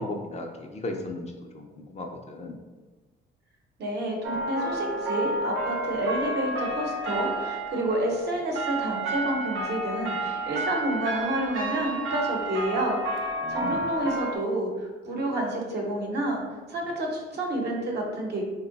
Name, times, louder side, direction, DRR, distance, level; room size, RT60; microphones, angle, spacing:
voice 1, 0.0-2.6 13.4-13.8, left 2 dB, 35° left, 2 dB, 0.5 m, -36 dB
voice 2, 3.8-13.0 13.2-14.7 15.0-16.4 16.7-18.4, right 1 dB, 55° right, 0 dB, 0.9 m, -29 dB
sound 1, 4.2-14.4, right 1 dB, 90° right, 0.6 m, -31 dB
3.5 x 2.2 x 3.9 m, 1.2 s
cardioid pair, 90°, 20 cm